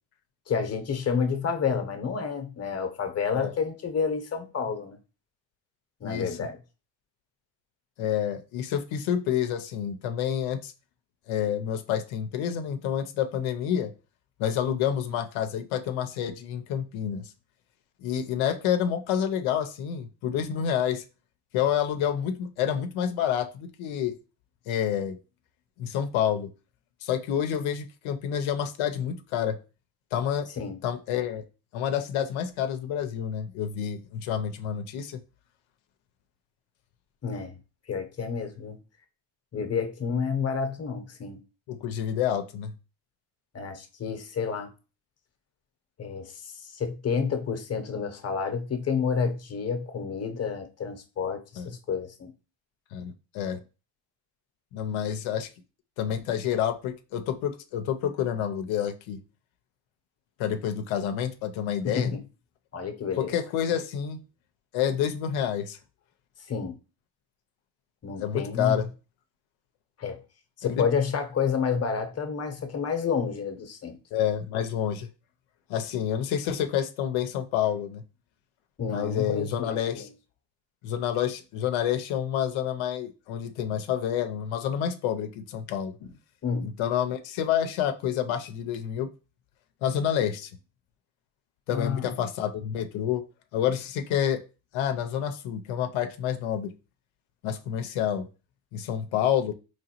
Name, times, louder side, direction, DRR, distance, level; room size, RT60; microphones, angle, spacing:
voice 1, 0.5-5.0 6.0-6.6 30.6-30.8 37.2-37.6 37.9-38.8 39.5-41.4 43.5-44.7 46.0-52.3 61.8-62.2 62.7-63.3 66.5-66.8 68.0-68.8 70.0-70.2 70.6-74.0 78.8-80.0 86.4-86.7 91.7-92.1, left 6 dB, 35° left, 0.8 m, -29 dB
voice 2, 6.0-6.4 8.0-10.7 11.3-13.9 14.4-17.3 18.0-21.0 21.5-24.1 24.7-25.2 25.8-26.5 27.0-29.6 30.1-30.5 30.8-31.4 31.7-35.2 41.7-42.7 51.6-51.7 52.9-53.6 54.7-55.5 56.0-59.2 60.4-62.1 63.2-64.2 64.7-65.8 68.2-68.9 70.6-70.9 74.1-75.1 75.7-78.0 78.9-80.1 80.8-86.1 86.6-89.1 89.8-90.5 91.7-93.2 93.5-94.4 94.7-96.7 97.4-98.3 98.7-99.5, left 9 dB, 90° left, 0.6 m, -28 dB
3.9 x 3.1 x 2.9 m
cardioid pair, 80°, 46 cm